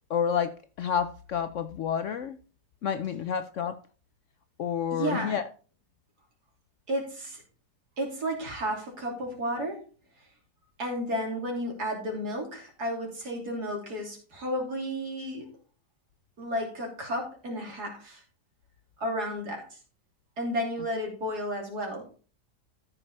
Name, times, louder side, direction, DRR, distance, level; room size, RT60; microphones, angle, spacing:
voice 1, 0.1-2.4 2.8-3.8 4.6-5.5, left 8 dB, 65° left, 11 dB, 0.8 m, -29 dB
voice 2, 4.9-5.3 6.9-7.4 8.0-9.8 10.8-15.5 16.4-18.2 19.0-19.8 20.4-22.1, equal, 70° right, 0 dB, 3.7 m, -32 dB
13.5 x 5.4 x 4.2 m, 0.38 s
omnidirectional pair, 1.7 m